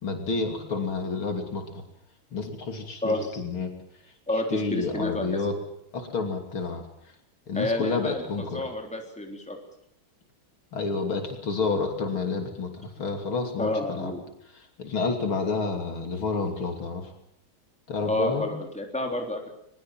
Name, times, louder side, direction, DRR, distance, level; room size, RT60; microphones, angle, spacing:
voice 1, 0.0-1.8 2.3-3.8 4.3-5.6 5.9-6.8 7.5-8.6 10.7-14.1 14.5-17.1 17.9-18.5, left 4 dB, 70° left, 4 dB, 3.8 m, -29 dB
voice 2, 3.0-3.4 4.3-5.5 7.5-9.6 13.6-14.2 18.0-19.5, left 1 dB, 5° left, 2 dB, 3.5 m, -30 dB
21.5 x 21.5 x 7.6 m, 0.75 s
omnidirectional pair, 2.4 m